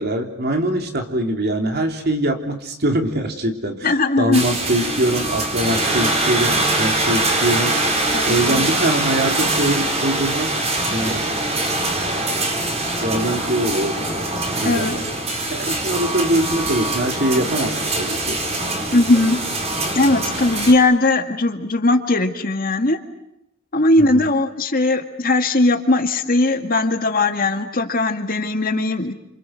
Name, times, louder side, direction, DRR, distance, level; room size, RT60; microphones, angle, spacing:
voice 1, 0.0-10.6 10.9-11.4 13.0-14.0 14.6-15.1 15.5-18.4 24.0-24.3, right 1 dB, 55° right, 4 dB, 3.3 m, -23 dB
voice 2, 3.8-4.4 8.1-8.6 14.6-15.0 18.9-19.4 19.9-23.0 23.7-29.1, left 2 dB, 45° left, 6 dB, 2.0 m, -18 dB
sound 1, 4.3-20.7, right 2 dB, 35° right, 4.4 m, -23 dB
29.5 x 27.5 x 6.5 m, 0.82 s
head